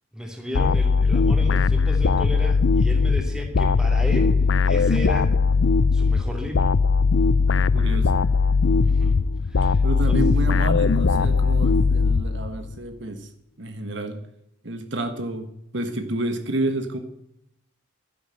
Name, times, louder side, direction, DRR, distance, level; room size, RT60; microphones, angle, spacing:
voice 1, 0.1-4.3 4.6-5.3 5.9-6.7 8.8-10.2, left 1 dB, 5° right, 2 dB, 2.5 m, -34 dB
sound 1, 0.5-12.7, left 4 dB, 70° left, 0.5 m, -20 dB
voice 2, 7.7-8.2 9.8-13.3 13.6-14.2 14.6-17.0, right 1 dB, 60° right, 7 dB, 1.5 m, -29 dB
12.0 x 10.5 x 7.9 m, 0.82 s
head